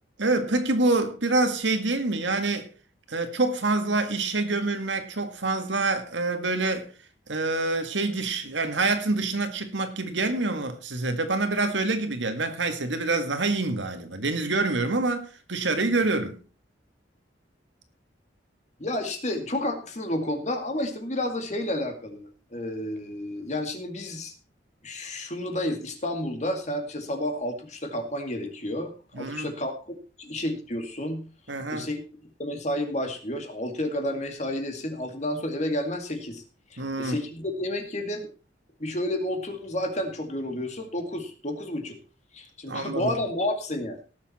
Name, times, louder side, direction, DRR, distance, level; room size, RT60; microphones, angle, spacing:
voice 1, 0.2-2.7 3.1-6.9 7.3-16.4 29.1-29.5 31.5-31.9 36.8-37.2 42.7-43.1, right 2 dB, 85° right, 1.9 m, -26 dB
voice 2, 18.8-24.3 24.8-31.3 31.7-32.0 32.4-36.4 36.7-38.3 38.8-42.0 42.3-44.0, left 1 dB, 40° left, 2.2 m, -31 dB
18.0 x 7.2 x 4.3 m
head